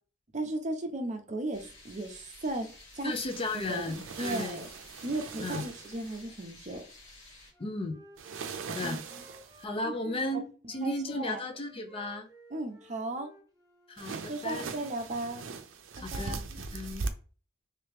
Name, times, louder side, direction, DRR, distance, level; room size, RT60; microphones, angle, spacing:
voice 1, 0.3-3.1 3.7-4.7 5.0-6.8 8.8-9.2 9.8-10.3 10.8-11.4 12.5-13.3 14.1-15.4 16.1-16.4, right 2 dB, 35° right, 0.6 m, -36 dB
sound 1, 1.5-7.5, left 2 dB, 80° left, 1.9 m, -53 dB
voice 2, 3.0-4.6 5.4-5.6 7.6-8.0 8.7-9.0 9.6-12.3 13.9-14.8 15.9-16.4 16.7-17.1, left 2 dB, 30° left, 0.5 m, -35 dB
sound 2, 3.1-6.2 8.2-9.7 14.0-17.1, right 4 dB, 75° right, 0.5 m, -40 dB
Wind instrument woodwind instrument, 7.5-10.4 10.7-14.2, right 2 dB, 20° right, 1.0 m, -57 dB
3.3 x 2.9 x 3.4 m
head